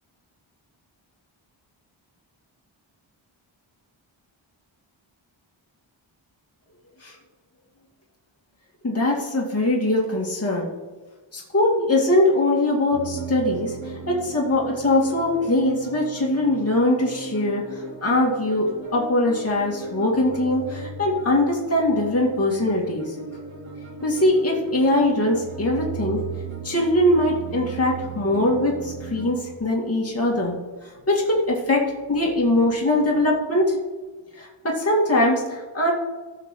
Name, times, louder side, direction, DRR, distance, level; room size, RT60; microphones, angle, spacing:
voice 1, 8.8-10.7 11.3-13.8 14.1-23.2 24.0-26.2 26.6-30.5 30.8-33.8 34.4-35.9, left 1 dB, 30° left, -3 dB, 2.2 m, -22 dB
sound 1, 12.9-29.3, right 4 dB, 75° right, 3.6 m, -37 dB
17.5 x 6.6 x 3.8 m, 1.3 s
wide cardioid pair, 100°, 48 cm